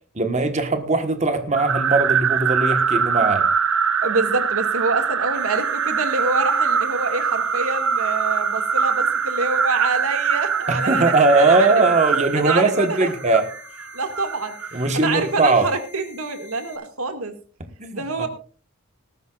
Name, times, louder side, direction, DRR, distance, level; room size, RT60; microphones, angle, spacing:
voice 1, 0.1-3.5 10.7-13.4 14.7-15.7 17.8-18.3, right 3 dB, 30° right, 7 dB, 1.4 m, -19 dB
sound 1, 1.5-14.9, right 6 dB, 70° right, 0.7 m, -23 dB
voice 2, 4.0-11.7 12.3-13.1 13.9-17.3 17.9-18.3, right 3 dB, 85° right, 6 dB, 2.1 m, -26 dB
sound 2, 5.3-16.8, left 2 dB, 35° left, 4.8 m, -45 dB
19.0 x 13.5 x 2.5 m, 0.39 s
head